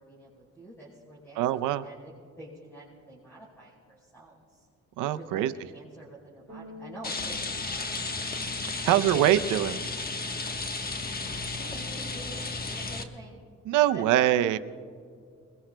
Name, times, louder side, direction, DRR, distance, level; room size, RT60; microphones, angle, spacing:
voice 1, 0.0-2.1 2.4-4.7 5.1-7.6 8.8-9.3 11.4-13.4 13.9-14.3, right 1 dB, 10° left, -5 dB, 4.8 m, -47 dB
voice 2, 1.4-1.9 5.0-5.5 8.7-9.8 13.7-14.6, right 12 dB, 85° right, 10 dB, 0.6 m, -24 dB
Bass guitar, 6.5-9.6, left 4 dB, 30° right, 2.2 m, -49 dB
Rain, 7.0-13.0, left 3 dB, 30° left, 1.2 m, -33 dB
28.5 x 22.0 x 2.2 m, 2.2 s
cardioid pair, 90°, 30 cm